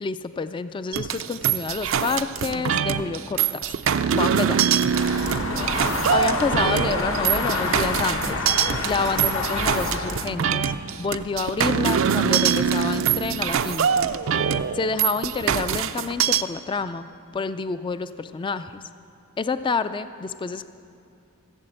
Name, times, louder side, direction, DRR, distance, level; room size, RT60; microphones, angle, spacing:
voice 1, 0.0-3.8 4.1-4.6 6.1-8.4 8.8-10.7 11.0-14.1 14.7-17.1 17.3-18.8 19.4-20.6, left 4 dB, 25° left, 12 dB, 0.3 m, -28 dB
sound 1, 0.9-16.4, right 7 dB, 70° right, 0.4 m, -23 dB
sound 2, 4.9-10.3, left 2 dB, 70° left, 1.3 m, -27 dB
15.5 x 7.5 x 7.7 m, 2.6 s
head